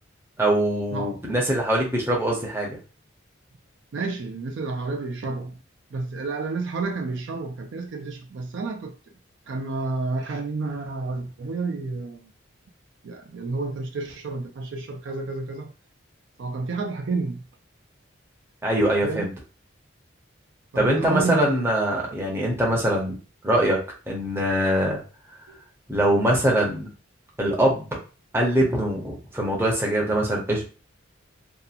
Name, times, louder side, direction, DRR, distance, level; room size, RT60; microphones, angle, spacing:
voice 1, 0.4-2.8 18.6-19.3 20.8-23.8 24.1-25.0 25.9-26.9 27.4-27.9 28.3-30.6, right 1 dB, 10° right, 0.6 m, -23 dB
voice 2, 3.9-5.6 5.9-8.9 9.5-12.3 13.0-15.7 16.4-17.4 19.0-19.3 20.7-21.7 25.5-25.6, right 3 dB, 60° right, 0.4 m, -30 dB
2.7 x 2.3 x 2.4 m
head